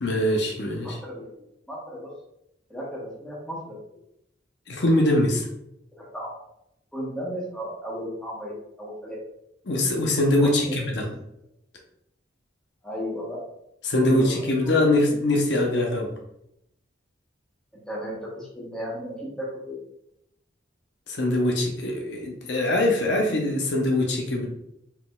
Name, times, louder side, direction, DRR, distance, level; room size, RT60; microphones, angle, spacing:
voice 1, 0.0-1.0 4.7-5.5 9.7-11.1 13.8-16.1 21.1-24.5, left 1 dB, 65° left, 0 dB, 0.8 m, -23 dB
voice 2, 0.8-2.1 2.7-3.8 5.9-6.3 6.9-9.2 10.4-10.9 12.8-13.4 14.0-15.0 17.8-19.8, equal, 5° left, -6 dB, 1.2 m, -35 dB
4.5 x 3.8 x 2.4 m, 0.79 s
head